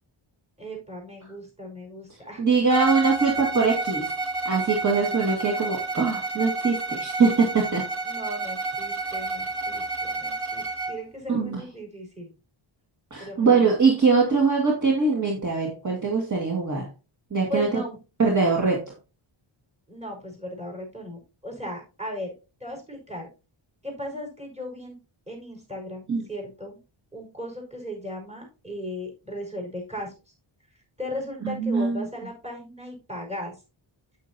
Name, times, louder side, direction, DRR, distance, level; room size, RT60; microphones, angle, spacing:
voice 1, 0.6-2.4 8.0-12.4 13.2-13.7 17.5-18.0 19.9-22.3 22.6-23.3 23.8-25.0 25.3-26.8 27.1-30.3 31.0-33.6, left 1 dB, 15° right, 0 dB, 5.2 m, -37 dB
voice 2, 2.4-4.1 4.5-7.8 11.3-11.6 13.1-16.9 17.3-17.8 18.2-18.9 26.1-26.2 31.4-32.1, right 4 dB, 35° right, -1 dB, 2.2 m, -22 dB
Bowed string instrument, 2.7-11.0, right 3 dB, 50° right, 1.7 m, -30 dB
9.2 x 8.9 x 2.8 m, 0.30 s
wide cardioid pair, 130°, 49 cm